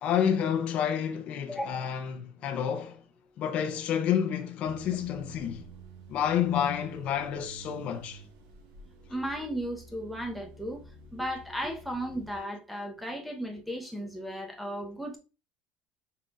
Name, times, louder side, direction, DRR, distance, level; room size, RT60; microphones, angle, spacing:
voice 1, 0.0-3.0 3.4-5.6 6.1-8.2, left 9 dB, 40° left, 0.5 m, -29 dB
voice 2, 1.5-1.9 9.1-10.8 11.1-15.2, equal, ahead, 0.8 m, -35 dB
sound 1, 4.6-12.4, right 3 dB, 80° right, 1.2 m, -50 dB
5.7 x 3.7 x 2.3 m
cardioid pair, 165°, 3 cm